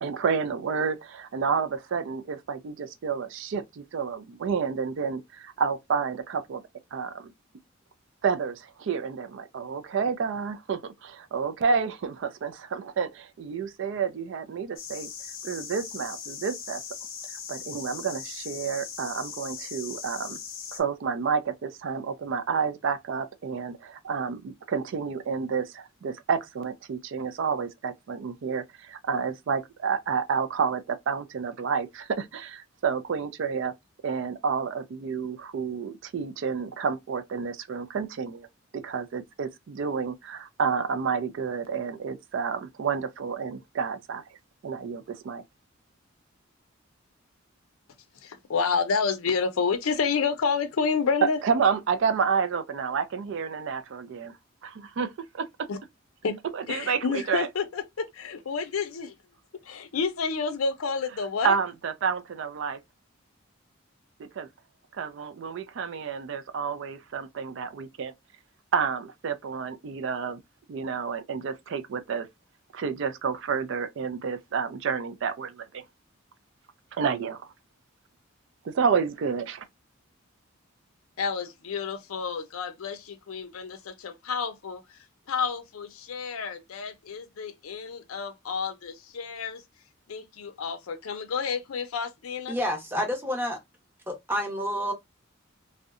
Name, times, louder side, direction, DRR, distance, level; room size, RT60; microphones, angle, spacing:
voice 1, 0.0-6.6 6.9-7.3 8.2-15.1 15.4-16.8 17.5-20.4 20.7-33.7 34.0-38.5 38.7-44.2 44.6-45.4 51.4-54.3 54.6-55.7 56.5-57.5 61.4-62.8 64.2-64.5 64.9-68.1 68.7-70.4 70.7-72.3 72.7-75.8 76.9-77.4 78.6-79.7, right 6 dB, 65° right, 0.3 m, -30 dB
sound 1, 14.8-20.8, left 7 dB, 45° left, 0.6 m, -39 dB
voice 2, 48.2-51.4 55.7-55.8 56.2-56.4 56.7-59.1 59.6-61.5 81.2-85.0 85.3-89.6 90.1-92.6, left 5 dB, 90° left, 0.5 m, -30 dB
voice 3, 92.5-93.6 94.1-94.9, equal, 10° right, 0.6 m, -29 dB
2.7 x 2.1 x 2.4 m
head